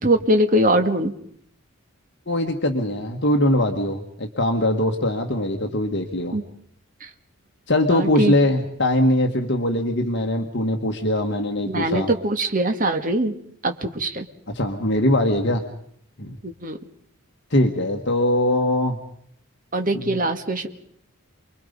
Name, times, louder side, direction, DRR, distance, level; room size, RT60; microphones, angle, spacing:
voice 1, 0.0-1.1 6.3-6.4 7.0-7.1 7.9-8.4 11.7-13.3 13.6-14.2 16.4-16.8 19.7-20.7, right 1 dB, 40° right, 6 dB, 1.7 m, -22 dB
voice 2, 2.3-6.4 7.7-12.1 14.5-15.6 16.2-16.4 17.5-19.0 20.0-20.1, left 1 dB, 50° left, 3 dB, 1.7 m, -21 dB
29.0 x 22.0 x 5.3 m, 0.68 s
head